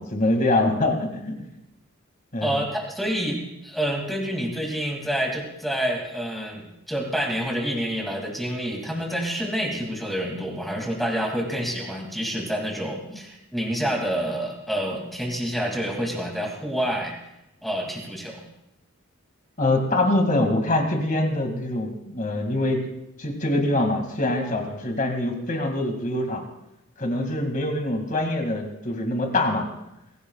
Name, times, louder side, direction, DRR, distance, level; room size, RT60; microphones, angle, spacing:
voice 1, 0.0-1.4 2.3-2.6 19.6-22.8 23.2-26.4 27.0-29.7, left 1 dB, 40° left, 4 dB, 2.3 m, -24 dB
voice 2, 2.4-17.1 17.6-18.4, equal, ahead, 0 dB, 2.6 m, -28 dB
23.0 x 16.0 x 2.4 m, 0.88 s
head